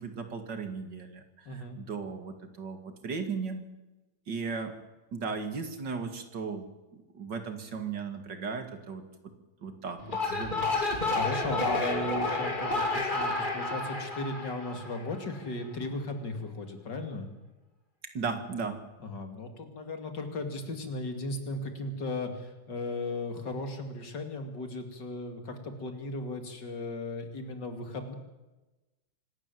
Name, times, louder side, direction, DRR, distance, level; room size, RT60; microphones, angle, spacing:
voice 1, 0.0-3.6 4.3-4.7 5.1-6.7 6.9-9.0 9.6-11.1 18.1-18.8, right 5 dB, 70° right, 7 dB, 2.8 m, -36 dB
voice 2, 1.5-1.8 10.8-17.3 19.0-28.2, left 2 dB, 70° left, 6 dB, 3.1 m, -36 dB
sound 1, 10.0-15.3, left 2 dB, 25° left, 3.0 m, -30 dB
25.5 x 13.0 x 9.3 m, 1.1 s
omnidirectional pair, 2.0 m